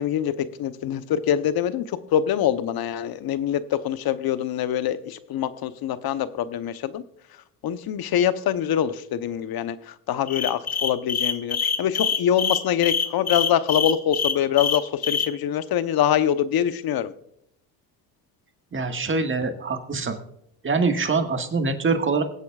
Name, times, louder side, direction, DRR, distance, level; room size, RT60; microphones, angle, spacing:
voice 1, 0.0-7.0 7.6-17.1, left 10 dB, 55° left, 13 dB, 0.9 m, -24 dB
sound 1, 10.3-15.3, left 6 dB, 35° left, 1.1 m, -25 dB
voice 2, 18.7-20.2 20.6-22.2, right 4 dB, 25° right, 5 dB, 1.7 m, -24 dB
22.5 x 8.3 x 2.4 m, 0.73 s
cardioid pair, 95°, 44 cm